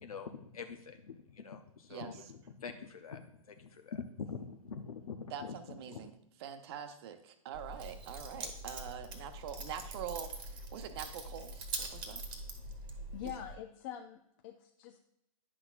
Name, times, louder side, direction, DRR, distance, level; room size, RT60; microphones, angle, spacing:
voice 1, 0.0-5.6 5.9-6.1, left 6 dB, 85° left, 6 dB, 0.6 m, -45 dB
voice 2, 1.9-2.3 5.3-6.1 6.4-12.2, right 8 dB, 45° right, 8 dB, 0.8 m, -44 dB
Keys jangling, 7.5-13.5, right 2 dB, 25° right, 1.1 m, -43 dB
voice 3, 13.1-15.0, left 10 dB, 35° left, 5 dB, 0.4 m, -45 dB
9.7 x 6.0 x 2.4 m, 0.82 s
hypercardioid pair, 130°, 18 cm